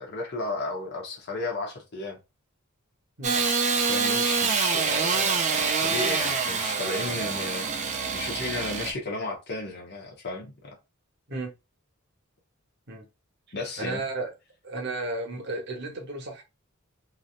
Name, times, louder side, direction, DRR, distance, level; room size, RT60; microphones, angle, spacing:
voice 1, 0.0-2.2 3.9-10.7 13.5-14.0, left 2 dB, 50° left, 0.9 m, -34 dB
Engine starting / Sawing, 3.2-8.9, right 5 dB, 35° right, 0.5 m, -26 dB
voice 2, 13.8-14.3 14.6-16.4, right 2 dB, 50° right, 1.0 m, -33 dB
3.2 x 2.6 x 2.4 m
head